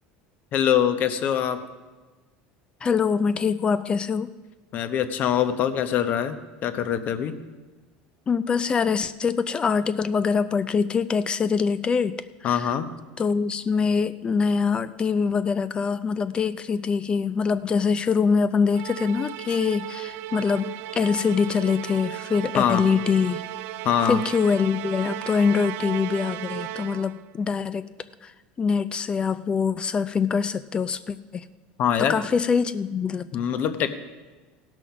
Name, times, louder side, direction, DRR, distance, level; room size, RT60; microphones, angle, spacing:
voice 1, 0.5-1.6 4.7-6.4 6.6-7.3 12.4-12.9 22.6-22.8 23.8-24.2 31.8-32.2 33.3-34.0, left 9 dB, 50° left, 9 dB, 0.9 m, -23 dB
voice 2, 2.8-4.3 8.3-12.1 12.4-12.7 13.2-23.4 24.1-27.9 28.2-28.3 28.6-31.4 32.1-33.3, left 5 dB, 25° left, 13 dB, 0.4 m, -24 dB
Musical instrument, 18.7-27.2, right 14 dB, 65° right, 0.4 m, -35 dB
16.0 x 6.2 x 5.9 m, 1.3 s
supercardioid pair, 115°, 4 cm